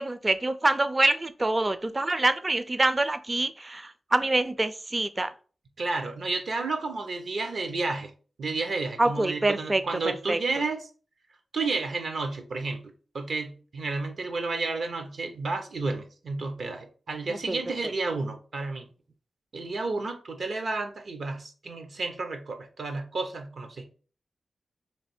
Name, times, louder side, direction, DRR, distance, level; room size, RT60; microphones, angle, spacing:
voice 1, 0.0-5.3 9.0-9.8 10.3-10.4 17.5-17.6, right 2 dB, 30° right, 0.4 m, -25 dB
voice 2, 5.8-8.1 8.4-10.9 11.5-18.9 19.5-23.8, right 3 dB, 70° right, 0.8 m, -31 dB
3.3 x 3.2 x 4.3 m
wide cardioid pair, 85°, 0 cm